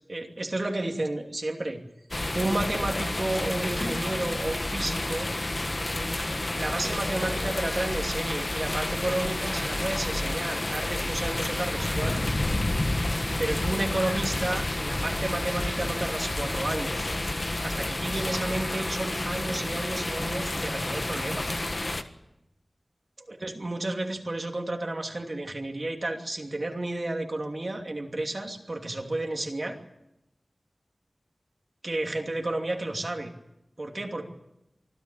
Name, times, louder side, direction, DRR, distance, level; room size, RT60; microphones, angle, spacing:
voice 1, 0.1-1.8 2.3-5.3 6.5-12.3 13.4-17.0 17.6-21.5 23.3-29.8 31.8-33.3 33.8-34.3, right 2 dB, 50° right, 3 dB, 2.7 m, -32 dB
sound 1, 2.1-22.0, left 1 dB, 40° left, 1.4 m, -30 dB
25.0 x 13.5 x 8.5 m, 0.89 s
wide cardioid pair, 60°, 0 cm